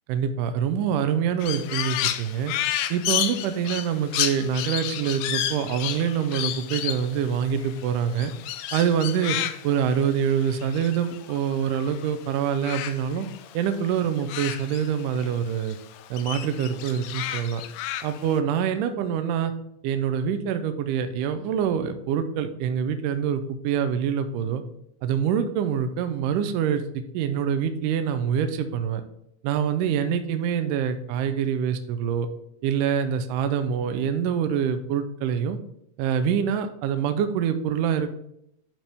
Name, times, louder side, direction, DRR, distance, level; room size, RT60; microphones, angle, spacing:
voice 1, 0.1-2.5 2.9-8.3 8.7-9.4 9.6-13.3 13.5-15.8 16.1-17.6 18.0-19.5 19.8-24.6 25.0-29.0 29.4-32.3 32.6-35.6 36.0-38.2, right 8 dB, 80° right, 9 dB, 2.1 m, -25 dB
Crow, 1.4-12.1 12.4-15.4 15.7-18.4, left 11 dB, 80° left, 1.7 m, -31 dB
11.5 x 4.4 x 3.4 m, 0.75 s
omnidirectional pair, 3.9 m